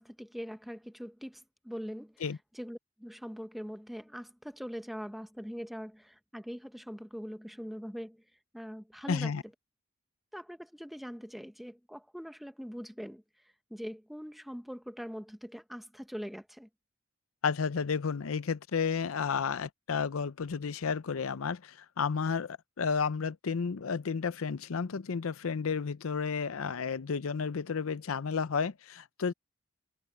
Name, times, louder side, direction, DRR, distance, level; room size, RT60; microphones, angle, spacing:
voice 1, 0.0-8.2 8.5-9.3 10.3-13.2 13.7-16.7, equal, ahead, 0.9 m, -42 dB
voice 2, 9.1-9.4 17.4-29.3, left 5 dB, 85° left, 0.6 m, -32 dB
head